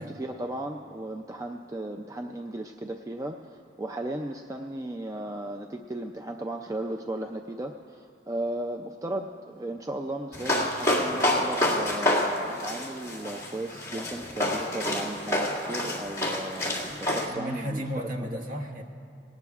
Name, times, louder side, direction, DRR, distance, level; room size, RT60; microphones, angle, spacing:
voice 1, 0.0-17.8 18.2-18.4, right 1 dB, 20° right, 4 dB, 0.4 m, -36 dB
sound 1, 10.3-17.3, left 1 dB, 20° left, 2.1 m, -28 dB
voice 2, 17.2-18.8, equal, 45° right, 3 dB, 1.0 m, -34 dB
19.0 x 18.5 x 2.4 m, 2.5 s
head